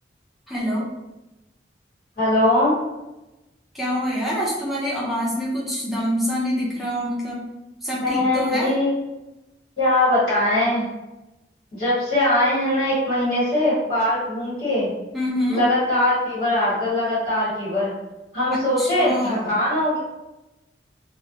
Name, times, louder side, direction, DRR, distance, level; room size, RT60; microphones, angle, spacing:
voice 1, 0.5-0.9 3.7-7.4 7.8-8.7 15.1-15.6 18.5-19.5, equal, ahead, -7 dB, 0.6 m, -26 dB
voice 2, 2.2-2.8 8.0-8.9 9.8-10.9 11.7-14.9 15.5-17.9 18.3-20.0, left 1 dB, 50° left, -10 dB, 1.3 m, -21 dB
2.1 x 2.1 x 2.8 m, 1.0 s
head